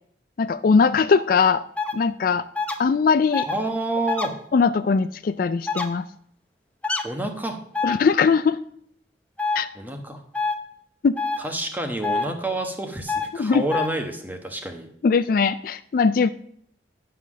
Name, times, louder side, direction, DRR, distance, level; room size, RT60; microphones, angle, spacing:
voice 1, 0.4-1.6 1.9-2.4 2.8-3.5 4.5-6.1 7.8-8.6 9.6-9.7 11.0-11.2 13.3-13.6 15.0-16.3, left 5 dB, 50° left, 13 dB, 0.3 m, -20 dB
sound 1, 1.8-1.9 2.5-2.8 3.3-3.5 4.1-4.3 5.7-5.9 6.8-7.0 7.7-8.0 9.4-9.6 10.3-10.5 11.2-11.4 12.0-12.3 13.1-13.3 13.7-13.9, left 4 dB, 10° left, 0.8 m, -25 dB
voice 2, 3.4-4.3 7.0-7.6 9.7-10.2 11.4-14.9, right 1 dB, 10° right, 4 dB, 1.2 m, -28 dB
10.5 x 5.8 x 6.2 m, 0.67 s
head